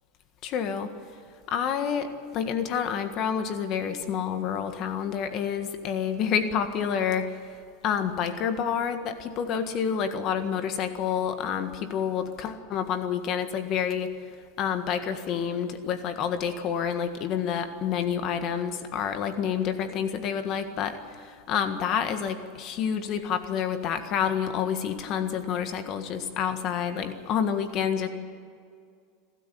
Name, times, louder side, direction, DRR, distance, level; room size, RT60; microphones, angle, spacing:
voice 1, 0.4-0.9 1.5-2.1 2.3-7.4 7.8-14.1 14.6-28.1, left 8 dB, 45° left, 8 dB, 1.7 m, -28 dB
25.5 x 13.0 x 8.5 m, 2.2 s
supercardioid pair, 140°, 0 cm